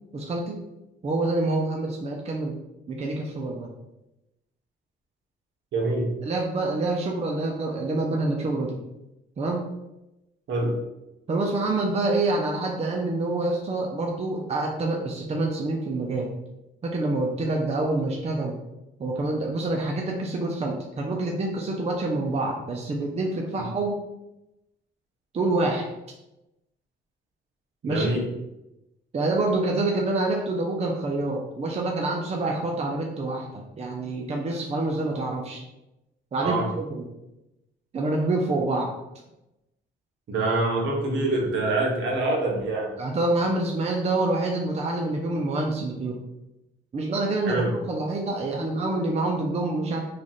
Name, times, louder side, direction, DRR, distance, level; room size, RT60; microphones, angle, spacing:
voice 1, 0.1-0.6 1.0-2.6 2.9-3.7 6.2-8.8 9.4-9.6 11.3-16.3 16.8-18.5 19.0-24.0 25.3-25.9 27.8-28.1 29.1-35.6 36.3-37.0 37.9-38.9 43.0-46.2 46.9-50.1, right 2 dB, 35° right, 0 dB, 0.5 m, -27 dB
voice 2, 5.7-6.1 10.5-10.7 23.5-23.6 27.8-28.2 36.4-36.7 40.3-42.9 47.5-47.7, right 2 dB, 70° right, -1 dB, 1.1 m, -25 dB
3.2 x 2.4 x 4.0 m, 0.93 s
cardioid pair, 90°, 20 cm